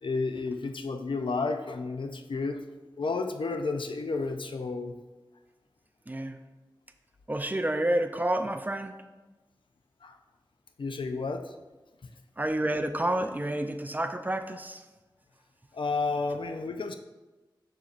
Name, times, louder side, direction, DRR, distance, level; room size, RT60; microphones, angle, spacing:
voice 1, 0.0-2.7 3.0-5.0 10.0-10.2 10.8-11.5 15.7-16.9, left 3 dB, 85° left, 7 dB, 0.4 m, -31 dB
voice 2, 6.1-6.4 7.3-9.0 12.4-14.8, right 1 dB, 20° right, 7 dB, 0.4 m, -29 dB
6.9 x 6.3 x 2.5 m, 1.2 s
wide cardioid pair, 80°, 8 cm